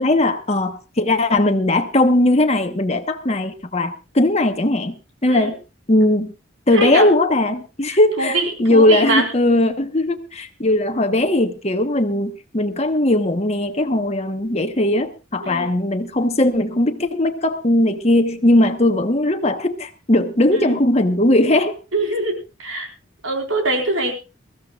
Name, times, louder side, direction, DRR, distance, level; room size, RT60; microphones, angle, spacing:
voice 1, 0.0-5.0 5.2-5.5 5.9-6.3 6.7-21.7, left 1 dB, 30° left, 1.2 m, -18 dB
voice 2, 6.7-7.1 7.9-9.3 15.4-15.7 20.5-20.8 21.9-22.9 23.2-24.1, right 2 dB, 80° right, 4.4 m, -23 dB
22.0 x 15.0 x 2.5 m
head